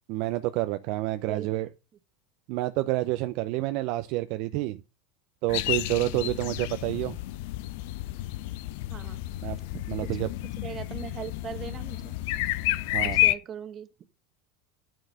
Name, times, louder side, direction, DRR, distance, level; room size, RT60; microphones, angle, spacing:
voice 1, 0.1-1.7 2.5-4.8 5.4-7.1 9.4-9.6 9.9-10.3 12.9-13.2, right 17 dB, 60° right, 0.6 m, -28 dB
voice 2, 1.3-1.6 6.1-6.4 8.9-9.2 9.7-12.2 13.0-13.9, right 8 dB, 35° right, 1.2 m, -40 dB
sound 1, 5.5-13.3, left 16 dB, 65° left, 0.6 m, -30 dB
10.0 x 4.6 x 6.6 m
hypercardioid pair, 95°, 0 cm